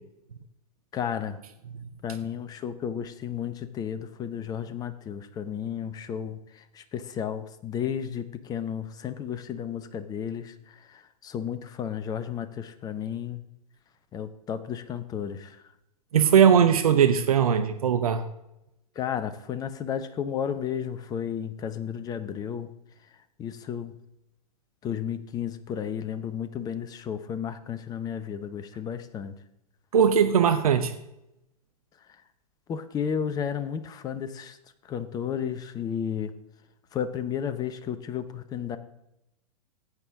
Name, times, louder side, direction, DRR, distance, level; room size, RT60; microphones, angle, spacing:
voice 1, 0.9-1.4 2.0-13.4 14.1-15.6 19.0-22.7 23.4-23.9 24.8-29.3 32.7-34.6 34.9-36.3 36.9-38.8, left 8 dB, 20° left, 12 dB, 0.8 m, -33 dB
voice 2, 16.1-18.2 29.9-30.9, right 8 dB, 65° right, 8 dB, 0.9 m, -20 dB
15.5 x 8.8 x 3.7 m, 0.87 s
figure-of-eight pair, 105°, 20 cm